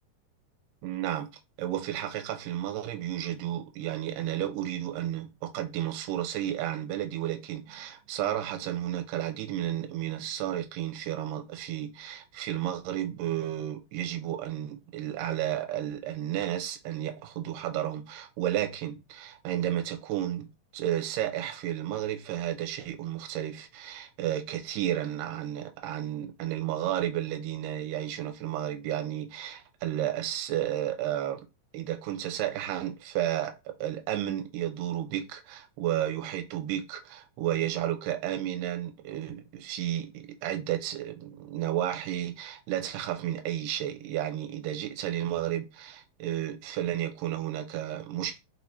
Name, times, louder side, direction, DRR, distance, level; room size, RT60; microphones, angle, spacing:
voice 1, 0.8-1.3 1.6-31.4 31.7-48.4, right 12 dB, 80° right, 2.2 m, -32 dB
4.3 x 4.3 x 2.8 m
omnidirectional pair, 4.1 m